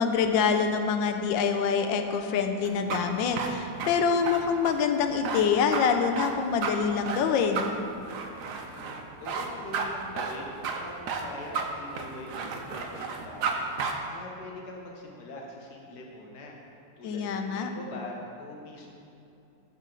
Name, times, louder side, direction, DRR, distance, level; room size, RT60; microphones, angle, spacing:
voice 1, 0.0-7.7 17.0-17.7, left 6 dB, 85° left, 6 dB, 1.3 m, -25 dB
sound 1, 2.6-13.5 13.8-13.9, right 5 dB, 70° right, 1.1 m, -33 dB
voice 2, 8.6-16.6 17.0-18.9, left 1 dB, 65° left, -1 dB, 1.6 m, -43 dB
12.0 x 4.4 x 3.8 m, 2.7 s
omnidirectional pair, 2.0 m